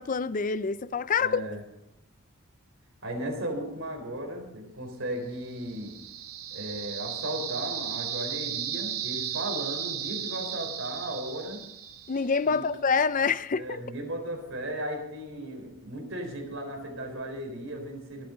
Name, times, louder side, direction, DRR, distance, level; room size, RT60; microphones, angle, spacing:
voice 1, 0.0-1.4 12.1-13.8, left 5 dB, 35° left, 0.5 m, -26 dB
voice 2, 1.2-1.6 3.0-5.9 6.5-11.6 12.4-12.7 13.6-18.3, right 1 dB, 60° right, 4.2 m, -36 dB
sound 1, 5.5-12.4, right 9 dB, 80° right, 1.6 m, -35 dB
25.5 x 9.0 x 4.0 m
head